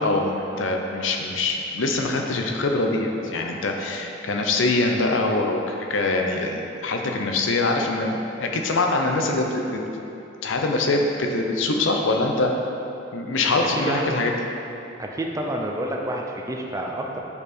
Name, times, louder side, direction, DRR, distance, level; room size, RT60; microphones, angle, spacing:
voice 1, 0.0-10.0 10.4-12.5 13.1-14.3, left 2 dB, 70° left, 2 dB, 0.6 m, -24 dB
voice 2, 13.7-14.1 15.0-17.2, right 1 dB, 15° right, 0 dB, 0.5 m, -28 dB
5.4 x 4.6 x 4.2 m, 2.9 s
head